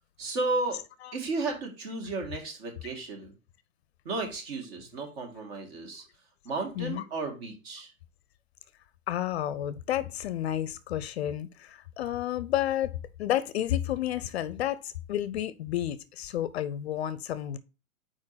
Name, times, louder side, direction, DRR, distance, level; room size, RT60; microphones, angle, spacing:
voice 1, 0.2-0.8 1.1-3.3 4.0-6.0 6.4-7.9, right 3 dB, 45° right, 2.1 m, -33 dB
voice 2, 9.1-17.6, left 12 dB, 50° left, 0.5 m, -31 dB
4.7 x 4.3 x 5.6 m
hypercardioid pair, 145°, 41 cm